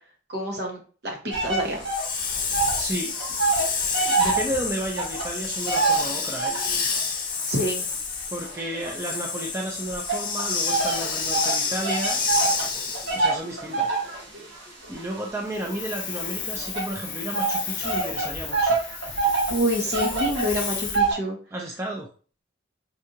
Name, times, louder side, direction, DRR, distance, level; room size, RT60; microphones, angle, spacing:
voice 1, 0.3-1.8 7.5-7.9 19.5-21.4, equal, 60° right, 0 dB, 1.2 m, -27 dB
sound 1, 1.3-2.9 3.1-6.8 7.4-9.5 10.1-21.1, right 4 dB, 85° right, 1.4 m, -26 dB
Hiss, 1.8-13.3 15.6-21.0, left 5 dB, 45° left, 0.8 m, -30 dB
voice 2, 2.7-3.1 4.0-6.6 8.3-12.2 13.1-13.9 14.9-18.8 21.5-22.1, right 1 dB, 15° right, -1 dB, 0.4 m, -32 dB
4.4 x 2.4 x 2.7 m, 0.39 s
head